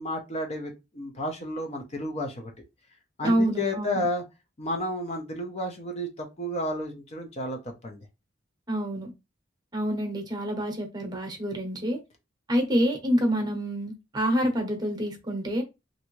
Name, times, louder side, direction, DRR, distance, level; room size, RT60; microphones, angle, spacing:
voice 1, 0.0-2.5 3.2-4.2 4.6-8.1, left 1 dB, 35° left, 3 dB, 0.6 m, -32 dB
voice 2, 3.2-4.0 8.7-9.1 9.7-12.0 12.5-15.6, equal, 20° right, 3 dB, 0.9 m, -27 dB
3.3 x 2.6 x 3.0 m, 0.25 s
head